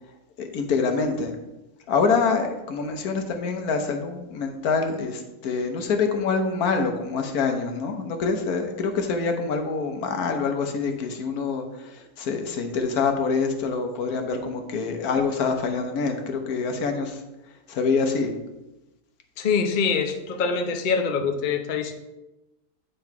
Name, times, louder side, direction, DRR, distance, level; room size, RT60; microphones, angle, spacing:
voice 1, 0.4-1.3 1.9-17.2 17.7-18.3, left 4 dB, 75° left, 5 dB, 1.4 m, -26 dB
voice 2, 19.4-21.9, left 5 dB, 50° left, 5 dB, 0.6 m, -24 dB
9.0 x 3.9 x 4.6 m, 1.0 s
omnidirectional pair, 1.6 m